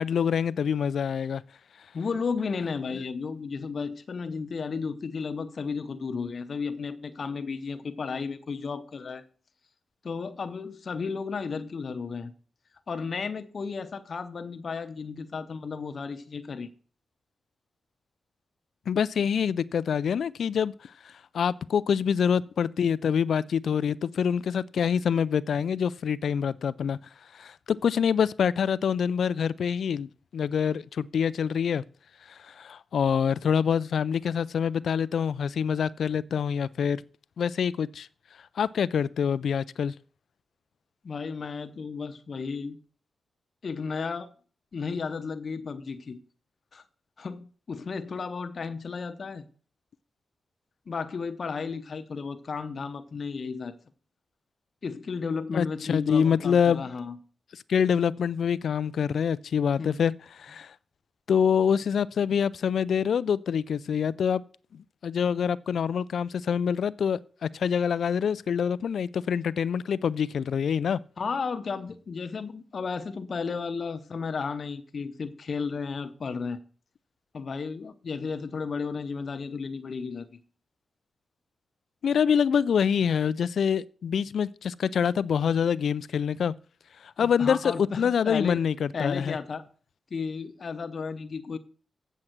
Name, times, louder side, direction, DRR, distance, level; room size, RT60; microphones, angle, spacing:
voice 1, 0.0-1.4 18.9-20.7 21.3-27.0 27.3-31.8 32.3-37.0 37.4-38.1 38.6-39.9 55.5-56.8 57.7-60.1 60.4-60.7 61.3-64.4 64.7-71.0 82.0-86.5 87.0-87.6 88.0-89.4, left 7 dB, 80° left, 0.4 m, -26 dB
voice 2, 1.9-9.2 10.0-12.3 12.9-16.7 41.0-42.8 43.6-44.3 44.7-46.2 46.7-46.8 47.2-49.4 50.9-53.8 54.8-57.2 59.8-60.0 71.2-76.6 77.3-80.4 87.2-88.6 88.9-89.6 90.1-91.6, left 5 dB, 60° left, 0.8 m, -33 dB
7.9 x 7.3 x 5.9 m
cardioid pair, 60°, 0 cm